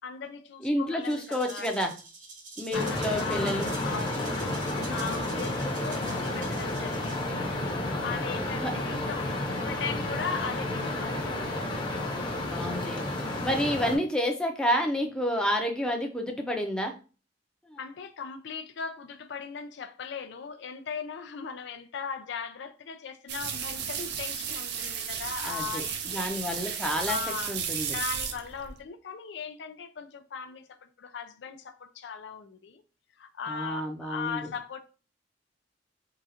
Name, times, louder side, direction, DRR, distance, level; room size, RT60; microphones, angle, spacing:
voice 1, 0.0-1.9 2.7-4.3 4.9-7.5 8.0-9.3 9.6-11.7 13.5-13.6 17.8-26.3 27.1-27.6 27.9-32.8 33.2-34.8, left 6 dB, 70° left, 0.4 m, -38 dB
voice 2, 0.6-1.9 2.6-3.6 8.6-8.7 12.4-13.0 13.4-16.9 17.7-17.8 25.4-25.8 26.1-27.2 27.5-28.0 33.5-34.4, equal, 5° left, 0.6 m, -29 dB
Rattle (instrument), 1.0-7.5, right 3 dB, 45° right, 0.9 m, -46 dB
sound 1, 2.7-14.0, left 1 dB, 25° left, 0.9 m, -31 dB
sound 2, 23.3-28.8, right 7 dB, 65° right, 0.5 m, -34 dB
3.8 x 2.4 x 4.2 m
head